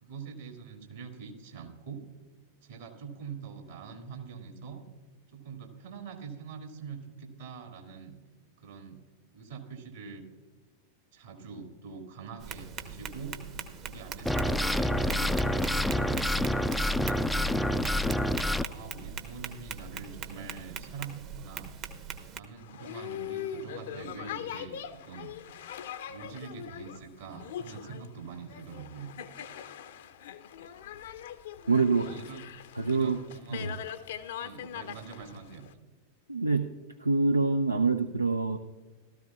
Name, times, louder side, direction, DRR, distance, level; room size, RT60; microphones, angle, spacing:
voice 1, 0.0-2.0 2.6-4.8 5.3-8.2 8.6-9.0 9.3-10.2 11.1-13.4 13.8-17.7 18.7-21.7 22.4-25.3 26.1-29.1 32.1-32.6 32.9-33.7 34.4-35.7, right 5 dB, 60° right, 3 dB, 2.1 m, -44 dB
Tap, 12.4-22.4, right 6 dB, 40° right, 1.0 m, -42 dB
sound 1, 14.3-18.6, left 1 dB, ahead, 0.3 m, -27 dB
Boat Water vehicle, 22.6-35.7, left 9 dB, 60° left, 0.6 m, -41 dB
voice 2, 31.7-32.1 32.7-33.2 33.5-33.8 36.3-36.7 37.0-38.6, right 4 dB, 85° right, 8 dB, 0.4 m, -25 dB
16.0 x 13.5 x 2.4 m, 1.3 s
figure-of-eight pair, 90°, 0 cm